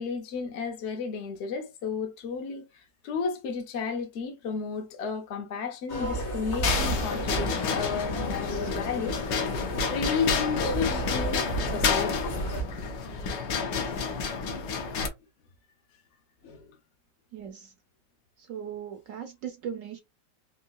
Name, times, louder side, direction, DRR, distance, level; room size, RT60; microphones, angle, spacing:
voice 1, 0.0-9.2 9.9-11.5 11.7-12.2 16.4-16.8, left 5 dB, 60° left, 0.7 m, -33 dB
sound 1, 5.9-12.6, right 1 dB, 45° left, 1.1 m, -33 dB
sound 2, 6.6-15.1, left 5 dB, 85° left, 1.4 m, -30 dB
voice 2, 17.3-17.7 18.4-20.0, right 8 dB, 70° right, 0.7 m, -38 dB
3.7 x 2.8 x 2.3 m
omnidirectional pair, 1.9 m